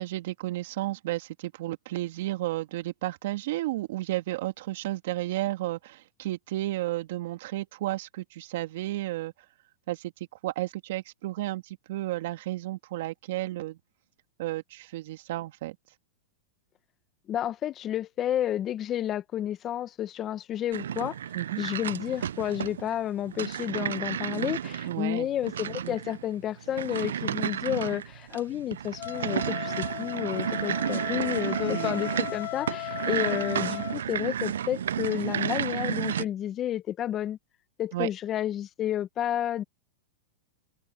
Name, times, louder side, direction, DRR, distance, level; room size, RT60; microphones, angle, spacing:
voice 1, 0.0-9.3 9.9-10.1 10.4-13.8 14.4-15.8 21.3-21.6 24.9-25.3 25.8-25.9 31.7-32.0 37.9-38.1, right 16 dB, 65° right, 2.4 m, -32 dB
voice 2, 17.3-21.1 21.6-37.4 37.8-39.6, left 11 dB, 30° left, 1.3 m, -31 dB
sound 1, 20.7-36.2, right 9 dB, 85° right, 0.4 m, -32 dB
Wind instrument woodwind instrument, 29.0-34.0, left 40 dB or more, 50° left, 3.7 m, -37 dB
open air
hypercardioid pair, 130°, 0 cm